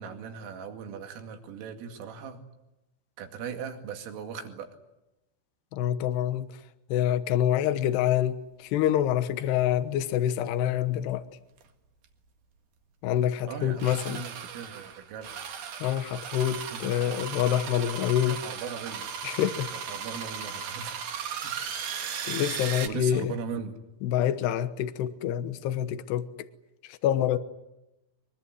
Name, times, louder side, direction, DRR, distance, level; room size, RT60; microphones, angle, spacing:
voice 1, 0.0-2.4 3.2-4.8 13.5-15.4 16.6-19.1 19.7-21.0 21.4-21.5 22.6-23.8, right 6 dB, 75° right, 4.8 m, -39 dB
voice 2, 5.7-6.6 6.9-11.3 13.0-14.2 15.8-18.4 19.2-19.7 22.3-23.3 24.0-26.5 26.8-27.4, left 11 dB, 70° left, 2.7 m, -26 dB
sound 1, 11.6-11.7 12.0-12.1 13.8-22.9, right 7 dB, 55° right, 2.3 m, -36 dB
23.5 x 22.5 x 9.7 m
omnidirectional pair, 6.0 m